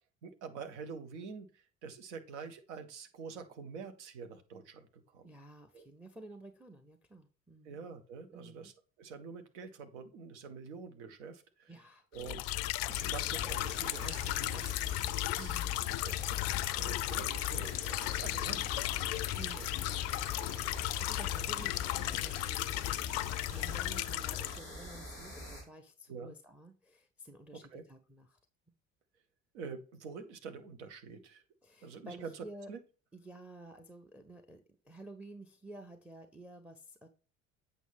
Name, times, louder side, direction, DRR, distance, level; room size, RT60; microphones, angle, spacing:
voice 1, 0.2-5.3 5.7-5.8 7.6-8.7 9.0-11.7 12.1-12.5 12.9-15.5 16.0-16.4 16.7-18.6 18.9-19.2 19.5-19.7 20.5-20.8 26.1-26.3 27.5-27.8 29.5-31.4 31.8-32.8, right 5 dB, 65° right, 8 dB, 1.2 m, -46 dB
voice 2, 5.2-7.8 8.3-8.7 11.7-12.0 15.4-15.7 18.0-18.6 19.4-20.3 21.0-28.4 31.6-32.7 33.1-37.1, right 2 dB, 5° right, 9 dB, 0.8 m, -52 dB
sound 1, 12.2-24.6, left 17 dB, 45° left, 0.4 m, -35 dB
sound 2, 12.9-25.6, equal, 85° right, 3.8 m, -46 dB
8.2 x 5.5 x 3.5 m, 0.37 s
figure-of-eight pair, 60°, 38 cm